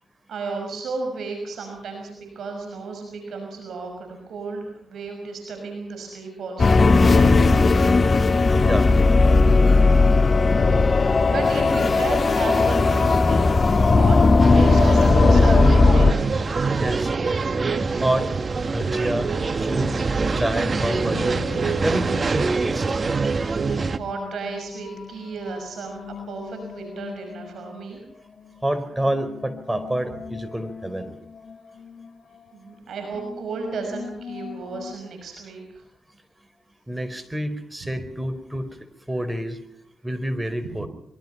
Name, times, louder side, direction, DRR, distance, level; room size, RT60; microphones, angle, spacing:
voice 1, 0.3-7.3 10.9-16.2 23.9-28.0 32.5-35.8 37.8-37.9 40.7-40.9, right 4 dB, 80° right, 4 dB, 6.0 m, -34 dB
sound 1, 6.6-16.1, left 3 dB, 45° left, 1.1 m, -16 dB
sound 2, 14.4-24.0, right 4 dB, 45° right, 1.6 m, -24 dB
voice 2, 16.8-17.1 18.0-18.3 18.6-20.0 20.3-21.4 21.8-23.1 28.6-31.2 36.9-38.8 39.1-39.6 40.0-40.9, right 1 dB, 15° right, 11 dB, 4.5 m, -28 dB
sound 3, 18.8-34.9, left 6 dB, 60° left, 2.5 m, -42 dB
25.0 x 23.5 x 5.7 m, 0.68 s
cardioid pair, 60°, 0 cm